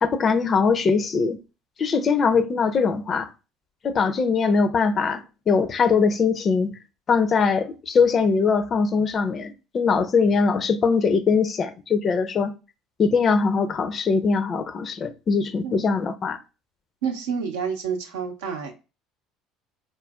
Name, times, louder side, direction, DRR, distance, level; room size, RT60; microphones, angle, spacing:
voice 1, 0.0-1.4 1.8-3.3 3.8-6.7 7.1-12.5 13.0-16.4, left 5 dB, 35° left, 0.4 m, -21 dB
voice 2, 17.0-18.7, right 6 dB, 70° right, 0.7 m, -29 dB
4.0 x 2.5 x 2.3 m
figure-of-eight pair, 60°, 0 cm